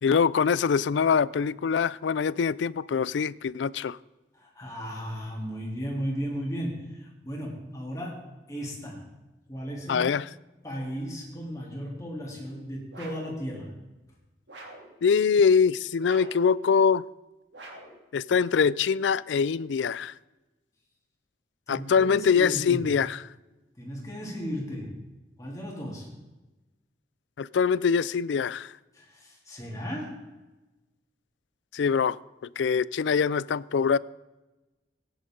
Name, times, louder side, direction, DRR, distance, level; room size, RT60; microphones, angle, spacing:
voice 1, 0.0-4.0 9.9-10.3 15.0-17.0 18.1-20.1 21.7-23.2 27.4-28.7 31.7-32.2 32.6-34.0, left 6 dB, 90° left, 0.4 m, -24 dB
voice 2, 4.3-9.1 9.5-10.1 10.6-13.8 21.7-22.8 23.8-25.1 25.4-26.2 28.9-30.4, equal, 20° left, 3.3 m, -35 dB
sound 1, 12.9-13.4 14.5-14.9 16.0-16.5 17.5-18.0, right 2 dB, 80° right, 2.9 m, -45 dB
18.5 x 10.5 x 3.9 m
head